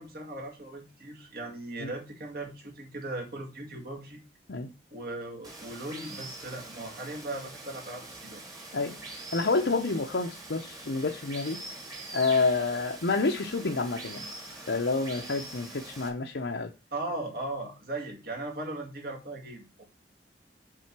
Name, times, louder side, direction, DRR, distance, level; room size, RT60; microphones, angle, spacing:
voice 1, 0.0-4.2 4.9-8.4 16.9-19.8, right 2 dB, 55° right, 2.3 m, -38 dB
Water, 5.4-16.1, right 2 dB, 20° right, 1.8 m, -44 dB
voice 2, 9.3-11.6 12.1-14.3 14.7-16.7, left 3 dB, 80° left, 0.8 m, -28 dB
7.5 x 3.8 x 6.0 m
head